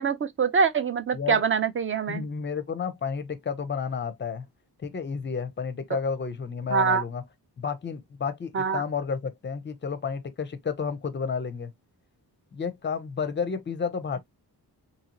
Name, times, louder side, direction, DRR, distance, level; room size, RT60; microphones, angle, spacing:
voice 1, 0.0-2.2 6.7-7.0 8.5-8.8, right 6 dB, 35° right, 0.4 m, -24 dB
voice 2, 2.1-4.5 4.8-7.2 7.6-11.7 12.5-14.2, left 6 dB, 30° left, 0.5 m, -31 dB
2.8 x 2.6 x 2.8 m
wide cardioid pair, 140°, 39 cm